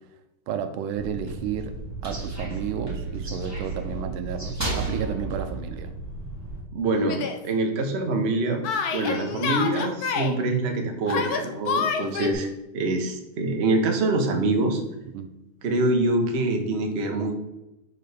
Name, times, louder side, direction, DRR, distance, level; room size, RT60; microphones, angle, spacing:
voice 1, 0.5-1.7 2.0-5.9 15.1-15.3, right 7 dB, 80° right, 9 dB, 1.4 m, -32 dB
sound 1, 0.9-6.6, right 3 dB, 10° right, 1.5 m, -33 dB
voice 2, 6.7-8.6 8.9-14.8 15.6-17.3, right 2 dB, 60° right, 3 dB, 0.7 m, -25 dB
Yell, 7.1-7.4 8.6-10.3 11.1-12.3, left 6 dB, 65° left, 0.9 m, -27 dB
6.6 x 5.3 x 3.4 m, 0.95 s
omnidirectional pair, 2.3 m